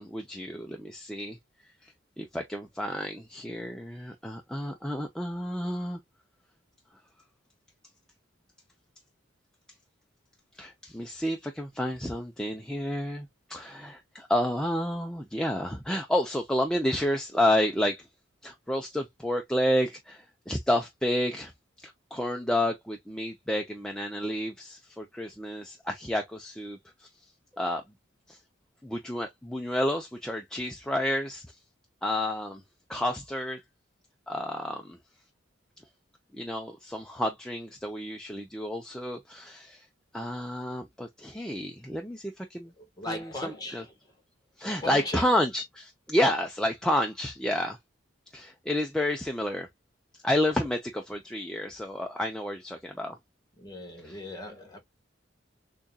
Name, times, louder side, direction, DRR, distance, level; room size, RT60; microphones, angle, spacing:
voice 1, 0.0-1.4 1.6-6.0 10.5-18.1 18.4-21.5 21.8-27.1 27.6-27.8 28.3-28.4 28.8-31.6 32.0-32.6 32.9-33.6 34.3-35.0 36.3-39.9 40.1-42.7 43.1-43.8 44.6-47.8 48.3-49.7 50.2-53.2 54.0-54.2, left 1 dB, 5° left, 0.5 m, -30 dB
voice 2, 42.8-44.2 44.8-45.3 53.6-54.8, left 1 dB, 20° left, 1.3 m, -39 dB
6.7 x 2.4 x 2.3 m
head